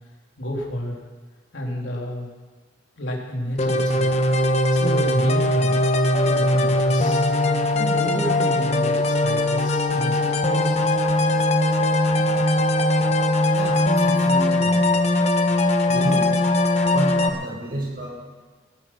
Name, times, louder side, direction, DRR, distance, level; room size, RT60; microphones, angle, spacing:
voice 1, 0.4-1.0 1.5-2.3 3.0-4.2 4.7-5.8 6.2-7.2 7.7-10.9, left 1 dB, 75° left, -2 dB, 3.4 m, -30 dB
sound 1, 3.6-17.3, left 1 dB, 35° left, 1.1 m, -20 dB
voice 2, 13.5-14.7 15.9-16.3 16.9-18.1, right 1 dB, 50° right, -3 dB, 6.5 m, -30 dB
18.0 x 11.5 x 6.1 m, 1.4 s
head